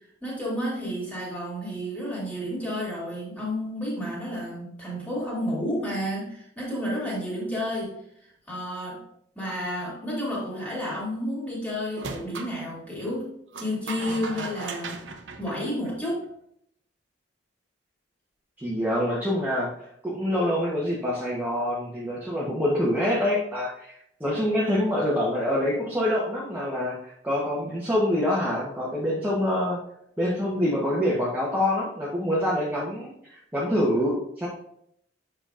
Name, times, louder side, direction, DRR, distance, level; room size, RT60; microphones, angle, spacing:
voice 1, 0.2-8.0 8.5-9.0 9.4-15.0 15.4-16.2, equal, 10° left, -6 dB, 2.3 m, -31 dB
sound 1, 11.9-12.5 13.5-16.2, right 3 dB, 75° right, 0.7 m, -37 dB
voice 2, 18.6-19.7 20.0-23.9 24.2-29.8 30.2-34.5, left 1 dB, 10° right, -7 dB, 0.9 m, -26 dB
7.7 x 5.7 x 2.4 m, 0.73 s
head